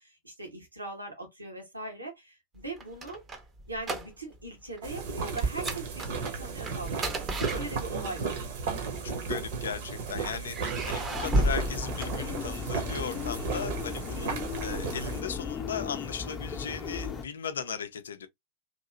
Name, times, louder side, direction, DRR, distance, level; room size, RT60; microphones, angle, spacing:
voice 1, 0.0-3.2 3.7-8.4 13.0-13.3, right 2 dB, 80° right, 1.1 m, -40 dB
sound 1, 2.6-4.5 4.7-5.0 5.4-8.2 9.0-9.9 10.5-12.8, right 1 dB, 20° right, 0.6 m, -33 dB
sound 2, 4.8-15.2, right 5 dB, 55° right, 0.9 m, -34 dB
voice 2, 9.0-18.3, left 7 dB, 65° left, 0.4 m, -37 dB
sound 3, 11.1-17.2, left 6 dB, 20° left, 0.6 m, -36 dB
2.9 x 2.7 x 2.4 m
figure-of-eight pair, 90°, 0 cm